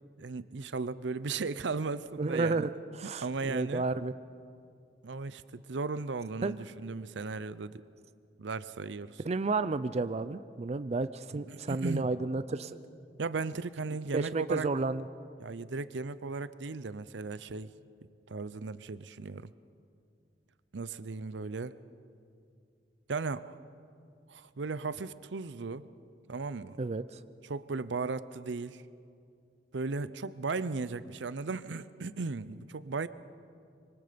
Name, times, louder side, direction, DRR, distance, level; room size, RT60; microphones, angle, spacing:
voice 1, 0.2-2.6 3.0-3.9 5.0-7.8 8.4-9.2 11.3-12.1 13.2-14.7 15.4-17.7 18.3-19.5 20.7-21.8 23.1-23.5 24.3-25.8 26.3-26.8 27.4-28.8 29.7-33.1, right 4 dB, 75° right, 16 dB, 0.6 m, -36 dB
voice 2, 2.2-2.7 3.0-4.1 6.4-6.5 9.2-12.7 14.1-15.0 26.8-27.0, right 3 dB, 35° right, 13 dB, 0.5 m, -31 dB
25.5 x 24.0 x 5.2 m, 2.4 s
head